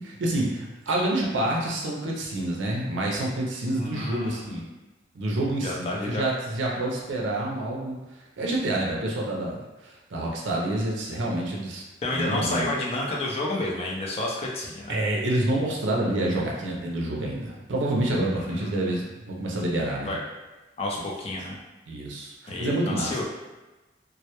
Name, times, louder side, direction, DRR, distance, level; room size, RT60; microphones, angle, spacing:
voice 1, 0.0-4.6 5.1-8.0 8.4-11.8 12.1-12.8 14.9-20.2 21.9-23.2, right 1 dB, 85° right, -2 dB, 0.5 m, -28 dB
voice 2, 3.7-4.7 5.6-6.2 12.0-15.0 18.3-18.9 20.0-20.2 20.8-21.6 22.5-23.2, left 2 dB, 35° left, -2 dB, 0.4 m, -30 dB
2.1 x 2.0 x 2.8 m, 1.1 s
head